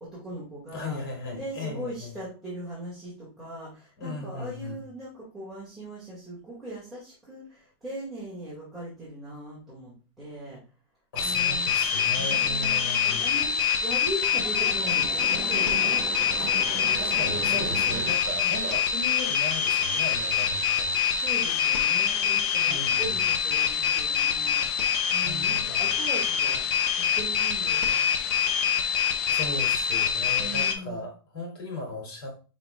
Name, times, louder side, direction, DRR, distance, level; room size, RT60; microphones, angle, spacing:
voice 1, 0.0-1.0 1.3-10.6 11.2-16.1 18.3-18.5 21.1-24.6 25.1-26.6 26.9-28.4 30.4-31.1, right 1 dB, ahead, -10 dB, 2.0 m, -39 dB
voice 2, 0.7-2.1 4.0-4.8 11.1-13.3 16.4-21.0 22.7-23.2 25.2-25.9 29.3-32.4, left 2 dB, 70° left, -1 dB, 2.6 m, -37 dB
sound 1, 11.2-30.7, left 7 dB, 50° left, 0.9 m, -25 dB
sound 2, 12.7-18.2, right 10 dB, 35° right, 0.4 m, -38 dB
5.7 x 4.0 x 2.3 m, 0.34 s
supercardioid pair, 145°, 13 cm